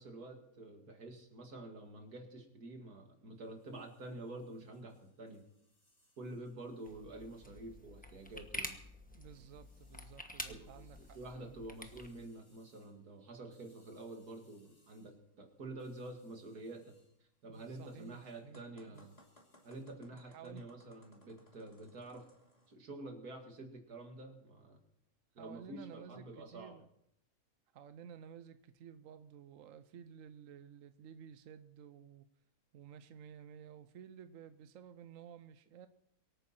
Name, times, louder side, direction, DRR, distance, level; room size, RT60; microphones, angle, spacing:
voice 1, 0.0-5.4 6.2-8.7 10.5-16.8 17.4-19.2 19.6-22.3 22.7-24.8 25.3-26.8, right 2 dB, 85° right, 2.7 m, -48 dB
sound 1, 3.3-19.8, left 1 dB, 90° left, 6.1 m, -76 dB
sound 2, 6.8-12.1, left 1 dB, 5° left, 1.0 m, -48 dB
voice 2, 9.1-11.6 17.4-19.1 20.1-20.6 25.4-26.9 27.7-32.3 32.7-35.9, right 8 dB, 65° right, 1.0 m, -54 dB
sound 3, 18.5-22.7, left 1 dB, 25° left, 2.5 m, -64 dB
24.0 x 9.2 x 4.4 m
omnidirectional pair, 1.6 m